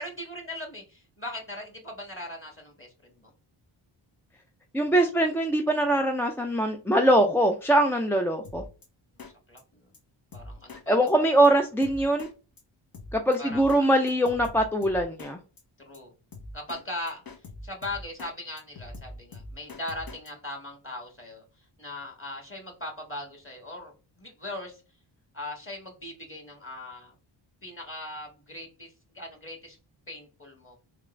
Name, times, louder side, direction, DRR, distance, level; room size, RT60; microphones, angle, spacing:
voice 1, 0.0-3.3 9.5-9.9 10.3-11.3 13.4-13.9 15.8-16.1 16.5-17.2 17.6-21.4 21.8-24.8 25.3-27.1 27.6-29.8 30.1-30.8, left 1 dB, 25° left, 2 dB, 2.0 m, -39 dB
voice 2, 4.7-8.6 10.9-12.3 13.1-15.4, right 1 dB, 5° left, 4 dB, 0.4 m, -22 dB
Drum kit, 8.4-8.9 9.2-9.3 9.6-9.7 9.9-10.0 10.3-10.8 11.1-11.2 11.4-11.5 11.8-12.3 12.6-12.7 12.9-13.8 14.1-15.3 15.6-15.7 15.9-16.0 16.3-16.8 17.1-18.3 18.6-20.3, left 2 dB, 45° left, 1.2 m, -43 dB
3.6 x 2.4 x 3.2 m, 0.33 s
cardioid pair, 55°, 49 cm